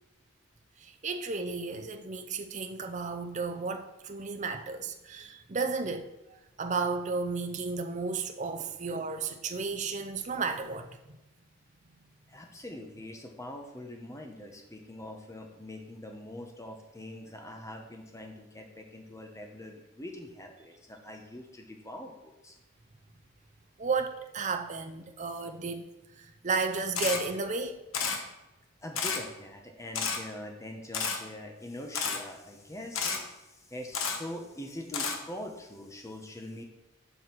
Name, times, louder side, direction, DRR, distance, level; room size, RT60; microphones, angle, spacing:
voice 1, 0.8-6.1 6.6-11.2 23.8-25.8 26.2-27.8, right 4 dB, 35° right, 6 dB, 0.6 m, -33 dB
voice 2, 12.3-22.5 28.8-36.6, left 1 dB, 15° left, 3 dB, 1.0 m, -43 dB
Camera, 26.9-27.2 27.9-28.2 28.9-29.2 29.9-30.2 30.9-31.2 31.9-32.2 32.9-33.2 33.9-34.2 34.9-35.2, left 5 dB, 80° left, 1.1 m, -30 dB
7.0 x 5.8 x 6.0 m, 0.95 s
head